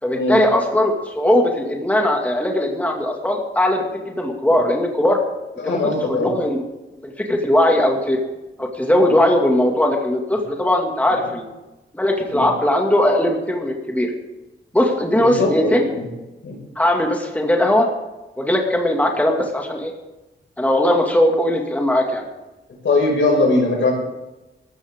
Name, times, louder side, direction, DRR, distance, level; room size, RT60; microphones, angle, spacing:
voice 1, 0.0-5.2 5.6-5.8 6.1-6.6 7.0-8.2 8.6-11.5 11.9-14.1 14.7-15.9 16.8-17.9 18.4-19.9 20.6-22.2, left 1 dB, 5° left, 1 dB, 2.2 m, -19 dB
voice 2, 5.6-6.3 11.1-11.2 12.3-12.5 15.2-16.1 16.4-16.6 22.8-23.9, left 2 dB, 75° left, -1 dB, 5.8 m, -20 dB
19.5 x 14.5 x 3.7 m, 1.0 s
wide cardioid pair, 100°, 20 cm